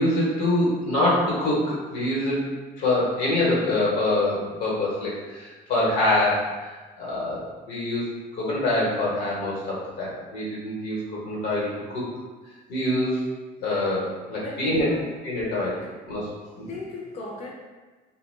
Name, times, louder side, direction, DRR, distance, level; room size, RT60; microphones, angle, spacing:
voice 1, 0.0-2.5 2.8-6.5 7.0-11.0 11.2-12.0 12.7-13.2 13.6-14.9 15.2-16.3 16.6-16.7, left 1 dB, 80° left, -6 dB, 1.0 m, -25 dB
voice 2, 14.4-15.1 15.8-15.9 16.7-17.5, left 2 dB, 40° left, -3 dB, 0.5 m, -36 dB
2.2 x 2.1 x 3.1 m, 1.3 s
cardioid pair, 110°, 17 cm